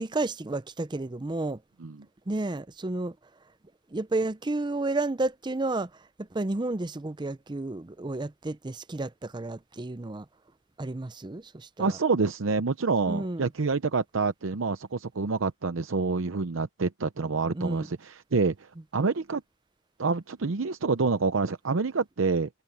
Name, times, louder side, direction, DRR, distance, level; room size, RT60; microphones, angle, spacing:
voice 1, 0.0-1.6 2.3-3.2 3.9-5.9 6.2-10.3 10.8-12.0 13.1-13.5 17.5-17.9, right 2 dB, 20° right, 0.5 m, -31 dB
voice 2, 11.8-19.4 20.0-22.5, right 4 dB, 85° right, 0.7 m, -27 dB
head